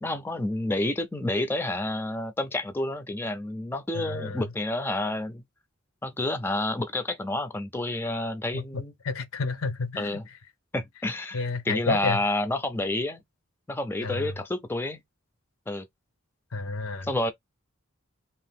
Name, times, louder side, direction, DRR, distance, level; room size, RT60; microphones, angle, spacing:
voice 1, 0.0-5.4 6.0-8.9 10.0-10.3 10.7-13.2 13.7-15.0 15.7-15.8 17.0-17.3, left 1 dB, 10° left, 0.4 m, -29 dB
voice 2, 3.9-4.4 8.5-10.2 11.3-12.2 14.0-14.3 16.5-17.1, left 4 dB, 80° left, 0.6 m, -31 dB
2.7 x 2.4 x 3.4 m
head